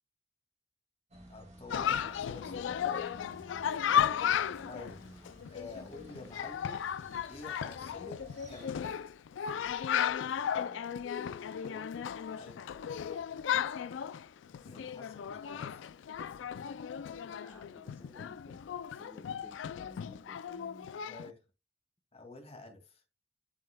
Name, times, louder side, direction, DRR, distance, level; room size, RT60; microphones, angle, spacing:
sound 1, 1.1-8.8, equal, 35° right, 1.5 m, -54 dB
voice 1, 1.3-2.6 4.7-5.0 5.5-6.9 7.3-8.8 12.3-12.6 14.5-15.8 21.1-21.4 22.1-23.0, left 3 dB, 35° left, 2.2 m, -49 dB
Chatter, 1.7-21.3, left 9 dB, 70° left, 0.3 m, -35 dB
voice 2, 2.4-2.9 3.6-6.5 10.5-12.0 13.8-15.3 17.1-21.0, left 1 dB, 15° left, 1.1 m, -56 dB
11.0 x 5.4 x 2.2 m
head